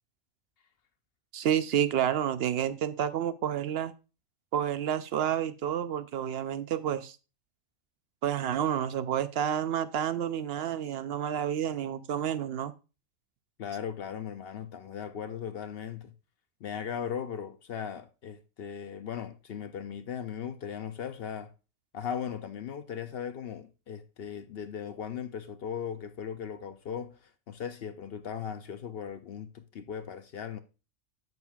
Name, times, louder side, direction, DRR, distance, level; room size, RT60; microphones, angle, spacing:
voice 1, 1.3-3.9 4.5-7.2 8.2-12.7, right 9 dB, 65° right, 0.7 m, -29 dB
voice 2, 13.6-16.1 16.6-21.5 21.9-30.6, left 8 dB, 60° left, 0.7 m, -38 dB
7.9 x 7.3 x 2.3 m
omnidirectional pair, 1.3 m